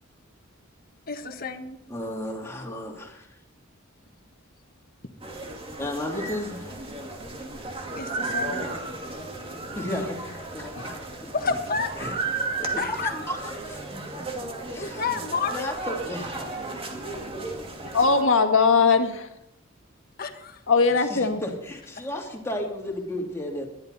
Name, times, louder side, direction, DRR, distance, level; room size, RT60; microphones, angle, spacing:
voice 1, 1.1-1.8 8.0-8.7 11.3-11.9 12.8-13.1 14.8-15.7 20.2-20.6, left 4 dB, 45° left, 6 dB, 1.5 m, -30 dB
voice 2, 1.9-3.3 5.8-6.8 9.7-10.9 11.2-11.5 12.0-14.2 14.7-15.2 15.5-16.6 21.1-23.7, left 1 dB, 15° left, -1 dB, 3.0 m, -34 dB
sound 1, 5.2-18.2, right 3 dB, 30° right, 2.2 m, -34 dB
voice 3, 17.9-19.3 20.7-21.4, left 4 dB, 70° left, 6 dB, 1.8 m, -20 dB
21.0 x 11.5 x 4.2 m, 0.83 s
head